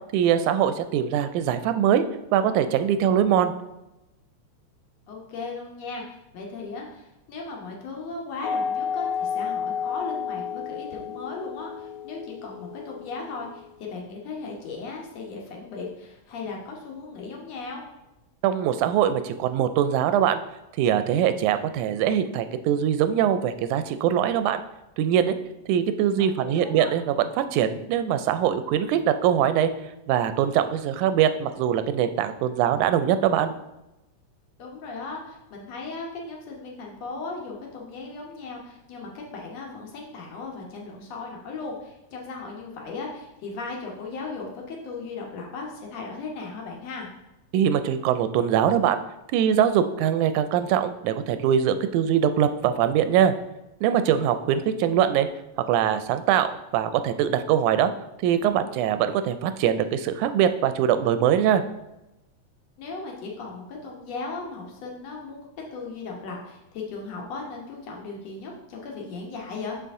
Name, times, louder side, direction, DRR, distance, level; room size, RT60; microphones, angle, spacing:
voice 1, 0.1-2.0 2.3-3.5 18.4-20.4 20.8-24.6 25.0-25.3 25.7-29.7 30.1-33.5 47.5-49.0 49.3-53.3 53.8-55.3 55.7-56.5 56.7-57.9 58.2-61.6, right 9 dB, 90° right, 11 dB, 2.0 m, -22 dB
voice 2, 5.1-17.8 26.4-26.9 34.6-47.1 62.8-65.5 65.7-69.8, left 3 dB, 65° left, -1 dB, 2.2 m, -37 dB
sound 1, 8.4-13.9, left 7 dB, 90° left, 2.2 m, -31 dB
6.8 x 5.8 x 3.6 m, 0.95 s
omnidirectional pair, 3.4 m